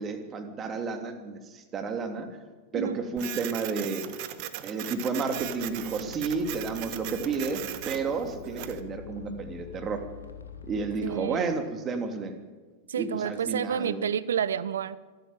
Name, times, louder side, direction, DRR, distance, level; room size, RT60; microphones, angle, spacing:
voice 1, 0.0-2.3 2.7-4.0 4.6-10.0 10.7-12.3 12.9-14.0, right 4 dB, 25° right, 6 dB, 2.9 m, -31 dB
Printer, 3.2-8.8, right 13 dB, 45° right, 1.4 m, -39 dB
sound 1, 5.3-11.2, left 6 dB, 75° left, 2.1 m, -45 dB
voice 2, 11.0-11.5 12.9-15.0, right 8 dB, 65° right, 19 dB, 0.8 m, -29 dB
25.5 x 13.0 x 9.0 m, 1.3 s
figure-of-eight pair, 90°, 0 cm